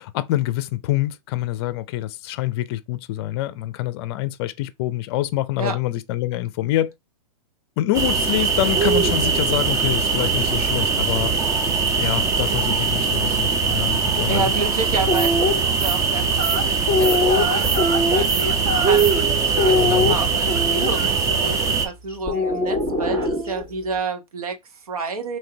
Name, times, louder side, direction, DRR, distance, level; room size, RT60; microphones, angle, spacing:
voice 1, 0.0-6.9 7.8-11.3 11.7-14.5 19.8-20.2, left 14 dB, 45° left, 0.5 m, -26 dB
sound 1, 7.9-21.9, right 5 dB, 15° right, 0.6 m, -21 dB
voice 2, 14.3-19.1 19.6-25.4, right 4 dB, 80° right, 1.1 m, -29 dB
sound 2, 14.9-15.5 16.3-19.2 19.6-21.1 22.3-23.6, left 2 dB, 35° right, 1.6 m, -22 dB
3.8 x 2.7 x 3.3 m
hypercardioid pair, 130°, 19 cm